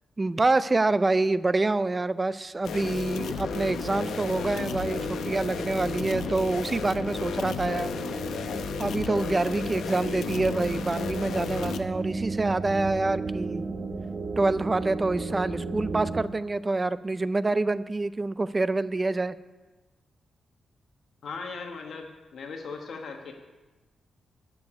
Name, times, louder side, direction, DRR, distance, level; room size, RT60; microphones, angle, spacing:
voice 1, 0.2-8.0 8.8-13.7 14.4-19.4, right 2 dB, 20° right, 15 dB, 0.4 m, -26 dB
sound 1, 2.6-11.8, left 6 dB, 85° left, 0.8 m, -33 dB
sound 2, 3.3-16.2, right 3 dB, 45° right, 1.1 m, -35 dB
voice 2, 21.2-23.3, left 4 dB, 65° left, 2 dB, 1.2 m, -38 dB
10.5 x 6.8 x 9.3 m, 1.2 s
wide cardioid pair, 130°, 0 cm